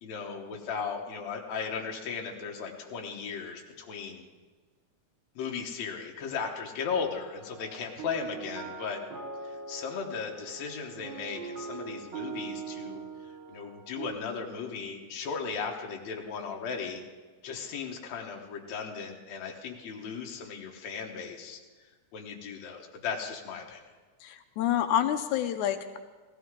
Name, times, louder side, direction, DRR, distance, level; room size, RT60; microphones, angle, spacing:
voice 1, 0.0-4.2 5.4-9.0 9.4-17.0 17.4-21.6 22.1-23.8, left 5 dB, 70° left, 1 dB, 2.4 m, -36 dB
sound 1, 7.0-14.2, right 5 dB, 50° right, 1.6 m, -42 dB
voice 2, 24.2-26.0, left 11 dB, 85° left, 8 dB, 2.1 m, -28 dB
17.0 x 14.5 x 3.7 m, 1.4 s
omnidirectional pair, 3.5 m